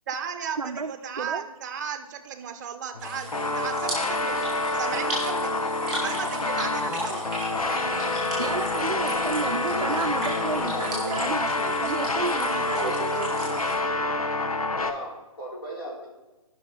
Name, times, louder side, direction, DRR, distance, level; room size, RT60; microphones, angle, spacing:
voice 1, 0.1-4.4 4.7-5.6 6.0-7.2, right 7 dB, 30° right, 8 dB, 0.9 m, -35 dB
voice 2, 0.6-1.5 8.4-13.3, right 4 dB, 80° right, 4 dB, 0.6 m, -32 dB
sound 1, 2.9-14.9, left 2 dB, 80° left, 0.9 m, -27 dB
sound 2, 3.0-13.7, right 1 dB, 5° right, 3.4 m, -37 dB
voice 3, 7.0-8.6 9.0-10.0 10.3-10.4 10.7-11.1 12.3-12.9 14.8-16.1, equal, 40° left, -4 dB, 4.1 m, -37 dB
17.0 x 5.9 x 3.9 m, 1.1 s
figure-of-eight pair, 140°, 18 cm